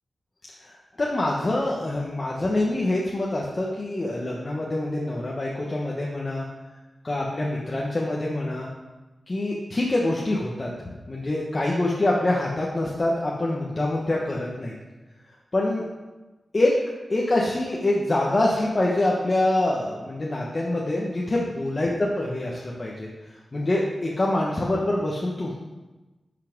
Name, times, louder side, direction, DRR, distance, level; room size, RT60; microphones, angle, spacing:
voice 1, 0.6-6.4 7.0-8.7 9.3-14.7 15.5-15.8 16.5-16.7 17.1-23.1 23.5-25.5, left 1 dB, 30° left, -3 dB, 1.2 m, -25 dB
12.0 x 5.7 x 5.2 m, 1.2 s
wide cardioid pair, 140°, 0 cm